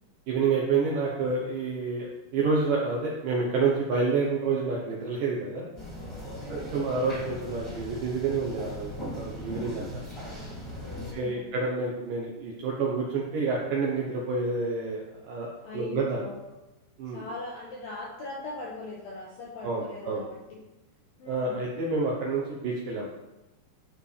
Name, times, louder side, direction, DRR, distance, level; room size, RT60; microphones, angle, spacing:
voice 1, 0.3-5.7 6.5-9.9 11.1-15.0 15.3-16.2 17.0-17.2 19.6-20.2 21.3-23.1, right 4 dB, 75° right, -3 dB, 2.0 m, -28 dB
sound 1, 5.8-11.1, equal, 10° left, 1.9 m, -39 dB
voice 2, 6.3-6.8 10.8-11.5 15.6-16.5 17.0-20.6 21.2-21.6, left 2 dB, 75° left, -3 dB, 2.1 m, -41 dB
12.0 x 5.3 x 3.3 m, 0.99 s
omnidirectional pair, 5.1 m